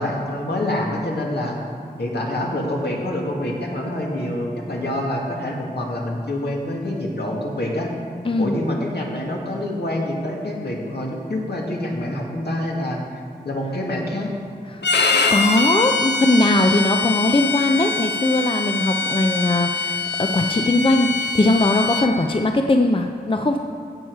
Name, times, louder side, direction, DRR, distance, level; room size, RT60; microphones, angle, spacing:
voice 1, 0.0-1.6 2.0-7.9 8.4-13.0 13.4-14.3, left 1 dB, 70° left, -2 dB, 2.1 m, -26 dB
voice 2, 8.2-8.6 14.7-14.8 15.3-23.6, left 2 dB, 30° left, 4 dB, 0.6 m, -20 dB
Bowed string instrument, 14.8-22.1, left 3 dB, 85° left, 0.8 m, -23 dB
16.0 x 7.3 x 4.7 m, 2.2 s
wide cardioid pair, 70°, 17 cm